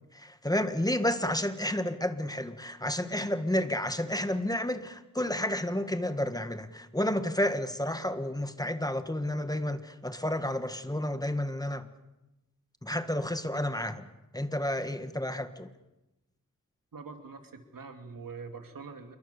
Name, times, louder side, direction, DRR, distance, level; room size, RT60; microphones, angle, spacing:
voice 1, 0.1-11.9 12.8-14.1 14.3-15.7, left 1 dB, 10° left, 1.6 m, -31 dB
voice 2, 16.9-19.2, right 4 dB, 90° right, 2.8 m, -44 dB
28.0 x 23.0 x 7.0 m
wide cardioid pair, 95°, 33 cm